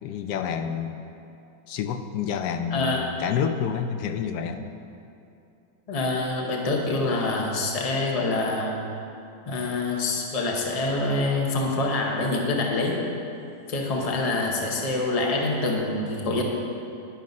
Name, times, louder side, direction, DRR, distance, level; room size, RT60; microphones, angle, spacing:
voice 1, 0.0-1.0 1.7-4.7, left 7 dB, 80° left, 7 dB, 1.2 m, -28 dB
voice 2, 2.7-3.0 5.9-8.8 9.5-13.0 13.7-16.4, left 2 dB, 30° left, 0 dB, 0.8 m, -26 dB
10.5 x 5.2 x 5.3 m, 2.7 s
omnidirectional pair, 1.7 m